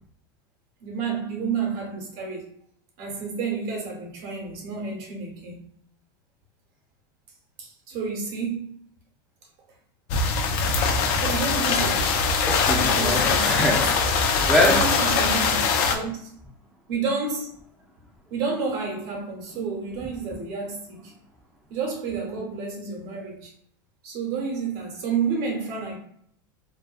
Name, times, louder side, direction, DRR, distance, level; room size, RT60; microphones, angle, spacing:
voice 1, 0.8-2.5 3.0-5.7 7.6-8.8 11.1-12.3 12.9-13.6 14.4-16.4 16.9-17.5 18.3-21.1 21.7-23.5 24.0-26.0, right 5 dB, 60° right, 1.0 m, -30 dB
sound 1, 10.1-15.9, left 5 dB, 55° left, 0.4 m, -22 dB
voice 2, 12.5-14.8, left 1 dB, ahead, 0.5 m, -24 dB
2.4 x 2.2 x 2.4 m
supercardioid pair, 125°, 12 cm